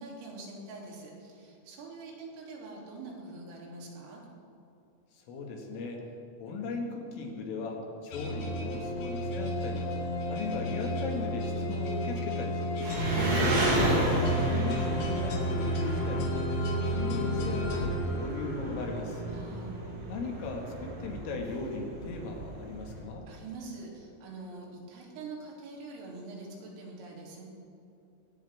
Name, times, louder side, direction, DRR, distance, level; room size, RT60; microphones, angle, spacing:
voice 1, 0.0-4.2 13.1-13.6 19.3-20.0 23.3-27.4, right 3 dB, 80° right, -3 dB, 5.9 m, -43 dB
voice 2, 5.1-6.0 6.4-9.9 10.3-13.0 13.8-16.3 16.6-19.2 20.1-23.3, left 3 dB, 75° left, 1 dB, 4.6 m, -37 dB
sound 1, 8.1-18.8, equal, 60° left, 4.0 m, -32 dB
Engine, 12.8-23.0, right 1 dB, 65° right, 7.2 m, -33 dB
21.5 x 17.5 x 3.7 m, 2.7 s
omnidirectional pair, 5.9 m